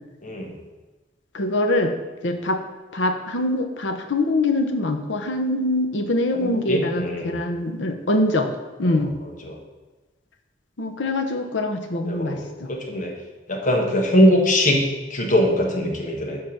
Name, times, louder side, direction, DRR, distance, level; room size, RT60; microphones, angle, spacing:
voice 1, 0.2-0.5 6.3-7.4 8.8-8.9 9.4-9.6 12.1-13.1 13.5-14.8 15.1-16.4, equal, 45° left, 1 dB, 1.3 m, -21 dB
voice 2, 1.3-1.9 2.2-2.6 2.9-8.5 8.8-9.1 10.8-12.7, left 1 dB, 75° left, 6 dB, 0.9 m, -23 dB
7.6 x 5.1 x 5.8 m, 1.2 s
head